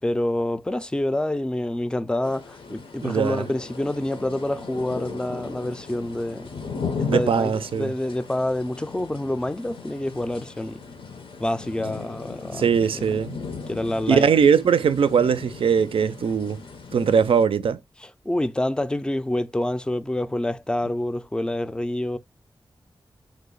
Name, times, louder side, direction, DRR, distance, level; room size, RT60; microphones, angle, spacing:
voice 1, 0.0-6.5 7.0-10.8 11.4-13.1 13.7-14.3 18.0-22.2, left 1 dB, 10° left, 0.3 m, -27 dB
sound 1, 2.2-17.5, left 5 dB, 80° left, 0.6 m, -37 dB
voice 2, 3.0-3.4 7.1-7.9 12.5-13.4 14.1-16.6 16.9-17.8, right 7 dB, 85° right, 0.4 m, -20 dB
3.1 x 2.1 x 3.7 m
cardioid pair, 60°, 9 cm